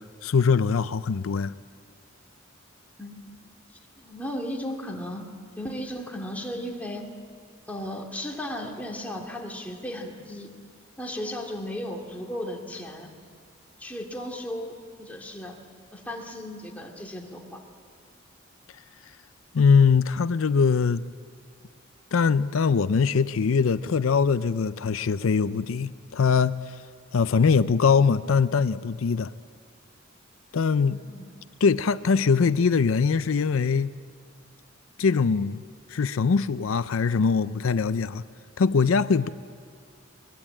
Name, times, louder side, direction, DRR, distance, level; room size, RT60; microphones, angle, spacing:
voice 1, 0.2-1.5 19.5-21.0 22.1-26.6 27.1-29.3 30.5-31.0 31.6-33.9 35.0-35.6 35.9-38.2 38.6-39.3, left 5 dB, 85° left, 0.5 m, -22 dB
voice 2, 3.0-3.4 4.0-5.2 5.6-7.1 7.7-10.5 11.0-13.1 13.8-15.6 15.9-17.6 30.9-31.3, left 1 dB, 10° left, 2.4 m, -35 dB
22.5 x 20.5 x 8.7 m
head